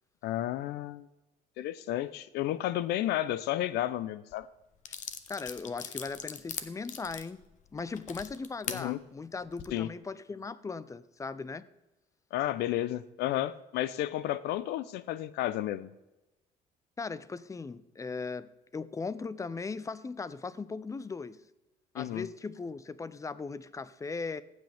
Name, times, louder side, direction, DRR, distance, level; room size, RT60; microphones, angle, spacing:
voice 1, 0.2-1.1 1.6-4.5 8.7-9.0 9.7-9.9 12.3-15.9 22.0-22.3, left 13 dB, 80° left, 16 dB, 0.5 m, -32 dB
sound 1, 4.3-4.4 4.8-8.8 9.4-9.7, left 8 dB, 45° left, 0.9 m, -40 dB
voice 2, 5.3-7.4 7.7-11.7 17.0-21.4 21.9-24.4, left 4 dB, 20° left, 17 dB, 0.5 m, -38 dB
15.0 x 7.9 x 3.4 m, 0.97 s
cardioid pair, 110°, 17 cm